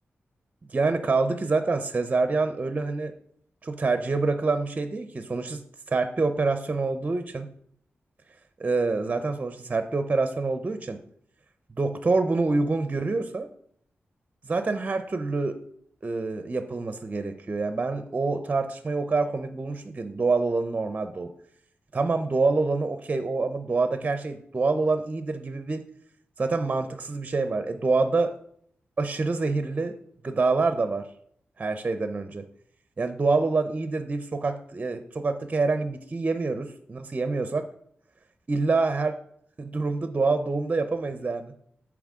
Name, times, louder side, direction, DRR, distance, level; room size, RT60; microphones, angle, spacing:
voice 1, 0.7-3.1 3.6-5.6 5.9-7.5 8.6-11.0 11.8-13.5 14.4-15.6 16.0-21.3 21.9-25.8 26.4-28.3 29.0-29.9 30.2-31.1 31.6-32.4 33.0-37.7 38.5-39.1 39.6-41.5, right 3 dB, 35° right, 9 dB, 0.5 m, -26 dB
7.4 x 4.7 x 3.6 m, 0.64 s
wide cardioid pair, 110°, 4 cm